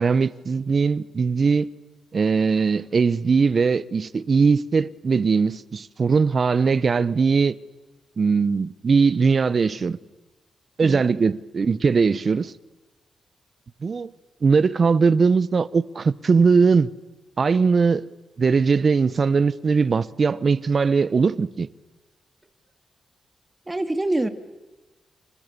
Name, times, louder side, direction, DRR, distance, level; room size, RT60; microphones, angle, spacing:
voice 1, 0.0-1.7 2.1-7.6 8.2-10.0 10.8-12.5 13.8-14.1 14.4-16.9 17.4-18.1 18.4-21.7, right 5 dB, 55° right, 1.1 m, -20 dB
voice 2, 23.7-24.3, right 1 dB, 20° right, 2.8 m, -25 dB
29.5 x 29.5 x 7.0 m
cardioid pair, 60°, 0 cm